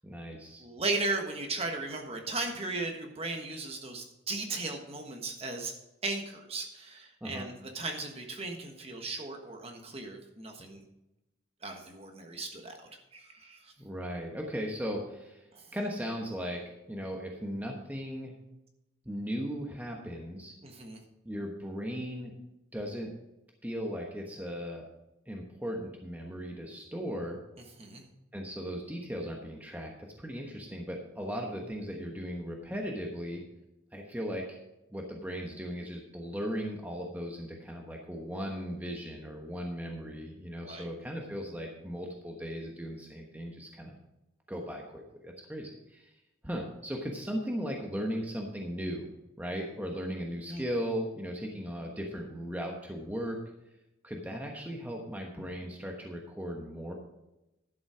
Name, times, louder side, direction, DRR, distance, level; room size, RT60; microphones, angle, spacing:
voice 1, 0.0-0.6 7.2-7.5 13.8-16.6 16.9-18.3 19.1-20.5 21.2-22.3 22.7-23.1 23.6-24.9 25.3-27.4 28.3-33.4 33.9-34.6 34.9-43.9 44.5-46.1 46.4-49.1 49.4-53.4 54.0-56.9, equal, 10° right, 0 dB, 1.1 m, -37 dB
voice 2, 0.6-5.7 6.0-10.8 11.6-12.8 13.1-13.7 15.5-15.6 20.6-21.0 27.8-28.0 40.6-40.9 50.5-50.6, right 3 dB, 30° right, 3 dB, 1.3 m, -36 dB
11.5 x 7.2 x 5.0 m, 0.92 s
head